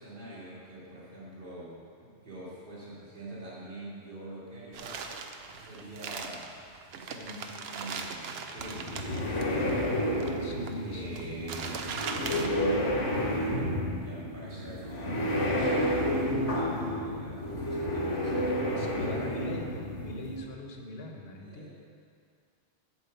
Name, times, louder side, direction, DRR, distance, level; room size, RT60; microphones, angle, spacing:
voice 1, 0.0-5.3 5.6-6.5 6.9-10.5 10.8-19.5 20.9-21.7, right 1 dB, 45° right, -8 dB, 2.6 m, -45 dB
sound 1, 4.7-12.5, right 5 dB, 65° right, 0.8 m, -40 dB
sound 2, 8.6-20.4, equal, 90° left, 1.8 m, -30 dB
voice 2, 10.4-11.4 18.8-21.7, left 1 dB, 60° left, 2 dB, 1.2 m, -41 dB
9.0 x 4.8 x 7.0 m, 2.2 s
omnidirectional pair, 1.2 m